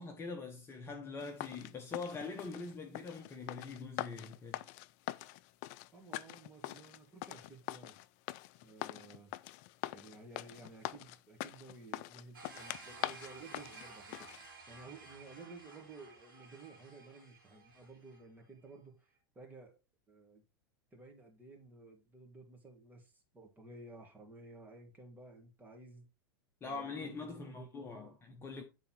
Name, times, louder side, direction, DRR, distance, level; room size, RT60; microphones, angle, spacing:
voice 1, 0.0-4.6 26.6-28.6, left 4 dB, 20° left, 1.1 m, -43 dB
sound 1, 1.2-14.4, left 16 dB, 45° left, 0.4 m, -44 dB
voice 2, 5.9-8.0 8.6-9.3 9.9-19.8 20.1-20.4 20.9-26.1 26.6-28.1, right 3 dB, 15° right, 2.3 m, -54 dB
sound 2, 12.3-18.3, right 3 dB, 65° right, 2.8 m, -54 dB
8.9 x 4.0 x 4.5 m
figure-of-eight pair, 85°, 12 cm